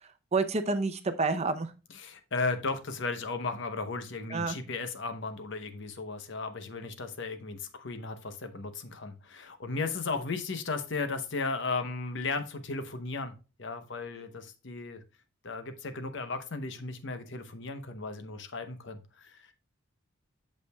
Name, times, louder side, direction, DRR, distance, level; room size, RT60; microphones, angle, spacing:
voice 1, 0.3-1.7 4.3-4.6, right 3 dB, 35° right, 0.6 m, -28 dB
voice 2, 1.9-15.0 15.4-19.5, left 3 dB, 65° left, 0.9 m, -35 dB
8.2 x 6.6 x 2.3 m
head